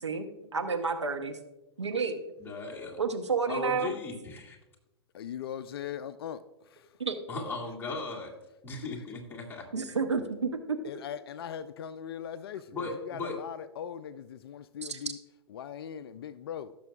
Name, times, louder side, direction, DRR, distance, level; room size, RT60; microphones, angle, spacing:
voice 1, 0.0-1.4 1.8-2.2 3.0-3.9 7.0-7.2 9.7-10.8 14.9-15.0, right 5 dB, 85° right, 6 dB, 0.9 m, -30 dB
voice 2, 2.4-3.0 3.5-4.6 7.3-8.3 8.6-9.7 12.7-13.4, left 3 dB, 15° left, -3 dB, 2.2 m, -37 dB
voice 3, 5.1-7.0 8.7-8.9 10.8-15.2 15.5-16.7, left 9 dB, 60° left, 15 dB, 0.4 m, -40 dB
16.0 x 6.8 x 2.4 m, 0.99 s
figure-of-eight pair, 105°, 14 cm